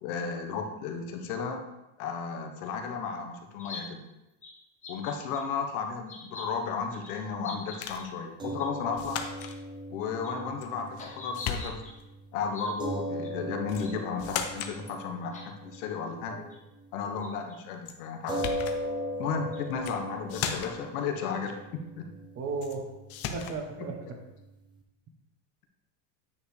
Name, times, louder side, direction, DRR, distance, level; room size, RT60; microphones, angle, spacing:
voice 1, 0.0-1.6 2.0-4.0 4.9-9.2 9.9-11.8 12.3-16.4 16.9-18.5 19.2-22.0, left 5 dB, 70° left, 4 dB, 1.3 m, -34 dB
sound 1, 3.6-3.8 4.4-4.5 4.8-5.4 6.1-6.4 6.9-7.1 7.4-8.1 8.6-8.7 8.9-9.0 9.4-9.5 10.0-10.3 11.0-11.9 12.5-12.7 13.2-13.3 13.8-13.9 14.6-14.9 15.3-15.4 15.7-15.8 16.5-16.6 17.2-17.6 18.4-18.5 19.5-19.6 20.3-20.4, left 4 dB, 15° left, 1.2 m, -44 dB
sound 2, 7.8-8.1 9.0-9.6 10.6-11.1 11.3-12.0 13.7-13.9 14.2-14.8 17.8-18.0 18.3-18.8 19.7-20.0 20.3-20.9 22.6-22.8 23.1-23.6, left 7 dB, 35° left, 0.6 m, -36 dB
sound 3, 8.4-16.9 17.2-17.4 18.3-24.8, equal, 10° right, 0.5 m, -39 dB
voice 2, 22.3-22.9 23.3-24.2, right 4 dB, 30° right, 4 dB, 0.9 m, -36 dB
9.2 x 5.1 x 3.3 m, 0.97 s
cardioid pair, 160°, 46 cm